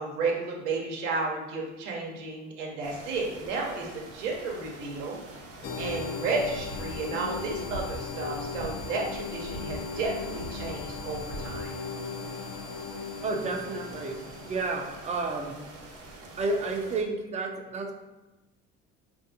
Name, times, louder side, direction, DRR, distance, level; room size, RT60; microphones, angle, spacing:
voice 1, 0.0-5.2 5.8-11.7, right 3 dB, 85° right, -1 dB, 0.8 m, -32 dB
sound 1, 2.8-17.0, right 2 dB, 40° right, 0.9 m, -47 dB
sound 2, 5.6-15.0, left 5 dB, 50° left, 0.6 m, -38 dB
sound 3, 6.4-8.1 8.4-8.8 9.3-11.6, right 1 dB, 70° left, 1.0 m, -42 dB
voice 2, 13.2-14.2 14.4-15.5 16.4-17.9, right 3 dB, 20° right, 3 dB, 0.4 m, -31 dB
3.3 x 2.6 x 2.7 m, 1.1 s
supercardioid pair, 80°, 36 cm